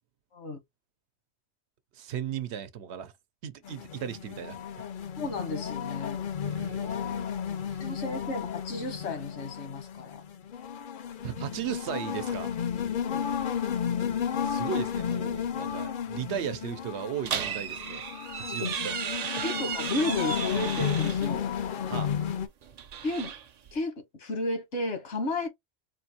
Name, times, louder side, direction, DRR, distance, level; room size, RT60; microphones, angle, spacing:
voice 1, 1.9-3.1 3.4-4.6 6.4-7.3 7.7-7.8 11.2-12.5 14.4-18.1 18.3-18.9 19.4-19.5 21.9-22.1, right 9 dB, 80° right, 0.9 m, -36 dB
sound 1, 3.6-22.5, left 8 dB, 60° left, 0.6 m, -33 dB
voice 2, 5.2-6.2 7.8-10.2 13.0-13.3 18.5-18.7 19.4-21.5 23.0-23.3 23.7-23.9 24.2-25.5, left 2 dB, 85° left, 1.4 m, -33 dB
sound 2, 17.2-21.3 22.6-23.8, right 7 dB, 55° right, 0.4 m, -35 dB
4.4 x 2.5 x 2.8 m
omnidirectional pair, 1.1 m